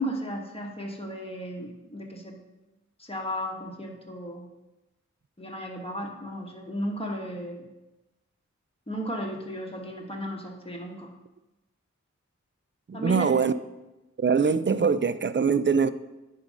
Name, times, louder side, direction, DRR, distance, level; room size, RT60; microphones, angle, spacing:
voice 1, 0.0-2.4 3.0-4.5 5.4-7.7 8.9-11.1 12.9-13.3, equal, 20° left, 1.5 m, -34 dB
voice 2, 12.9-13.5 14.2-15.9, right 5 dB, 40° right, 0.4 m, -23 dB
10.0 x 4.0 x 5.2 m
wide cardioid pair, 40°, 30 cm